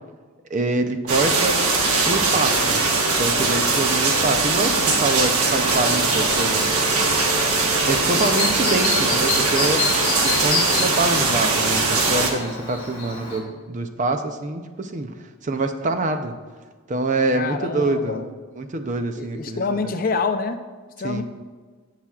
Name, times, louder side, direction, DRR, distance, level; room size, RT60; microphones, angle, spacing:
voice 1, 0.5-1.6 2.0-2.9 3.1-6.7 7.9-9.9 10.2-15.1 15.4-16.3 16.9-18.2 18.6-19.9 21.0-21.2, right 2 dB, 35° right, 7 dB, 0.5 m, -25 dB
sound 1, 1.1-12.3, right 3 dB, 85° right, 1.2 m, -21 dB
Chirp tweet, 5.4-13.4, left 4 dB, 25° left, 1.7 m, -30 dB
sound 2, 6.1-11.0, equal, ahead, 0.8 m, -37 dB
voice 2, 17.3-18.3 19.1-20.6 21.0-21.2, left 4 dB, 40° left, 8 dB, 0.5 m, -26 dB
16.0 x 5.8 x 2.4 m, 1.5 s
head